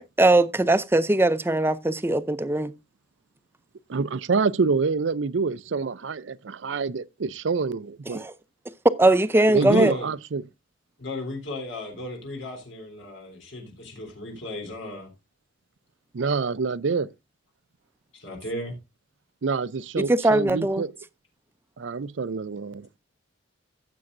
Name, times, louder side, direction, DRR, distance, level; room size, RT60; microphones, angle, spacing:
voice 1, 0.0-2.7 8.1-8.3 9.0-9.9 20.0-20.8, right 2 dB, 10° right, 0.6 m, -21 dB
voice 2, 3.9-8.3 9.5-10.4 16.1-17.1 19.4-20.9 21.8-22.9, right 4 dB, 70° right, 0.5 m, -26 dB
voice 3, 9.6-10.1 11.0-15.1 18.1-18.7, left 2 dB, 85° left, 3.6 m, -35 dB
15.5 x 7.7 x 2.6 m
head